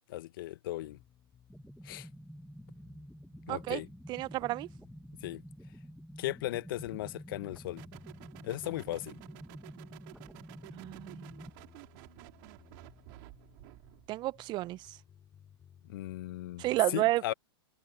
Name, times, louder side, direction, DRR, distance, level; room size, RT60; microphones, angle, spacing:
voice 1, 0.1-1.0 1.8-2.1 3.5-3.9 5.2-5.4 6.2-7.8 8.4-9.2 15.9-16.6 16.9-17.3, left 16 dB, 60° left, 1.3 m, -37 dB
sound 1, 0.8-16.8, left 8 dB, 25° left, 7.3 m, -60 dB
sound 2, 1.5-11.5, equal, ahead, 2.2 m, -49 dB
voice 2, 3.5-3.8 4.1-4.7 10.7-11.3 14.1-15.0 16.6-17.3, right 17 dB, 35° right, 0.9 m, -31 dB
sound 3, 7.8-14.1, right 27 dB, 50° right, 4.0 m, -53 dB
hypercardioid pair, 105°, 13 cm